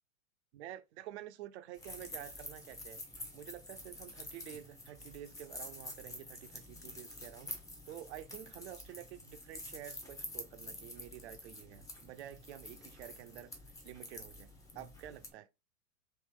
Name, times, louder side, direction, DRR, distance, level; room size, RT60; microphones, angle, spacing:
voice 1, 0.5-3.0 3.3-7.5 7.9-13.5 13.8-15.5, right 12 dB, 55° right, 0.6 m, -49 dB
sound 1, 1.7-15.3, left 2 dB, 10° left, 0.6 m, -48 dB
3.2 x 2.6 x 3.5 m
figure-of-eight pair, 100°, 41 cm